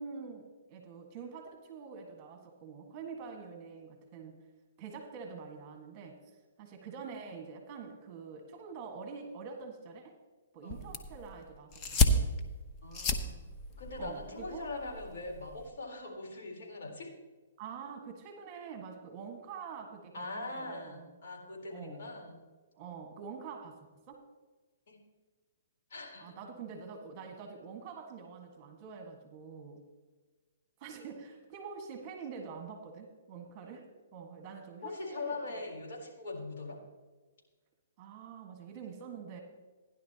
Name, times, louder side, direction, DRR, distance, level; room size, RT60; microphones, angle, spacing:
voice 1, 0.0-4.4 4.8-6.2 6.6-10.1 10.5-12.2 14.0-14.6 17.6-21.1 21.7-22.0 22.8-23.8 24.1-24.2 26.2-29.8 30.8-33.9 34.1-35.6 38.0-39.4, right 5 dB, 30° right, 3 dB, 1.6 m, -46 dB
sound 1, 10.7-15.7, left 2 dB, 25° left, 0.9 m, -33 dB
voice 2, 12.8-13.4 13.8-17.1 20.1-22.4 24.9-25.0 25.9-26.3 34.8-36.8, left 2 dB, 65° left, 0 dB, 3.9 m, -41 dB
16.0 x 10.5 x 2.9 m, 1.3 s
hypercardioid pair, 145°, 0 cm